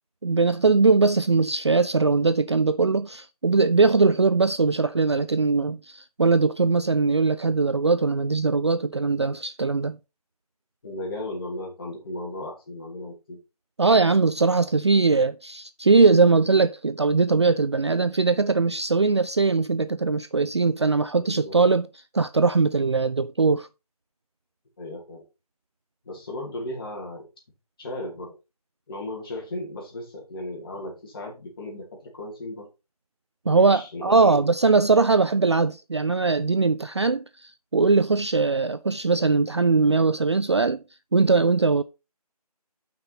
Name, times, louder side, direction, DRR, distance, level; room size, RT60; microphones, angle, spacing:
voice 1, 0.2-10.0 13.8-21.9 22.1-23.7 33.5-40.8 41.1-41.8, right 4 dB, 45° right, 0.4 m, -21 dB
voice 2, 10.8-13.4 21.2-21.6 24.8-25.2 26.0-27.3 27.8-28.3 28.9-32.7 33.4-34.4, left 1 dB, 35° left, 2.9 m, -35 dB
7.4 x 5.9 x 4.1 m
figure-of-eight pair, 160°, 20 cm